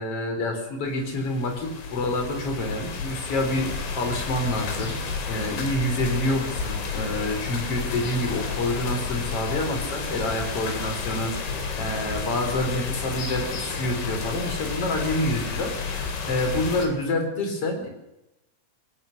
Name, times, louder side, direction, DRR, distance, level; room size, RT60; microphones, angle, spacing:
voice 1, 0.0-3.7 3.9-4.9 5.3-11.3 11.8-17.9, left 1 dB, 30° left, 4 dB, 4.2 m, -27 dB
sound 1, 0.9-16.9, left 5 dB, 60° left, 5.2 m, -31 dB
25.5 x 18.0 x 6.7 m, 0.94 s
omnidirectional pair, 5.9 m